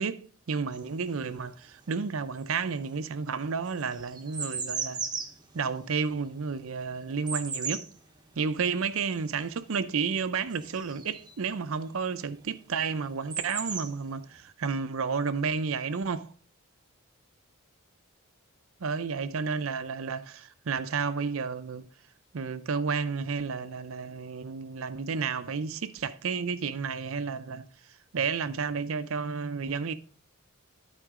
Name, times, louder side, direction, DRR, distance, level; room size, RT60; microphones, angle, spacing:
voice 1, 0.0-5.0 5.5-7.8 8.4-16.3 18.8-21.9 22.3-27.6 28.1-29.9, right 5 dB, 70° right, 0.6 m, -31 dB
sound 1, 0.7-1.9 2.2-11.5 12.5-12.6 12.8-14.4, right 5 dB, 20° right, 0.8 m, -37 dB
12.0 x 4.5 x 3.7 m
head